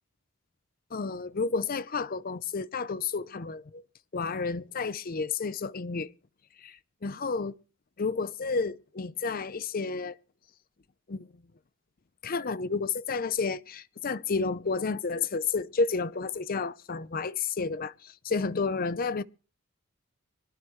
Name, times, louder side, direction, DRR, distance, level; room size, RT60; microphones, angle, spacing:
voice 1, 0.9-3.8 4.1-6.1 6.6-7.5 8.0-10.2 11.1-11.3 12.2-19.2, left 4 dB, 45° left, 0.6 m, -31 dB
25.5 x 12.0 x 3.2 m
head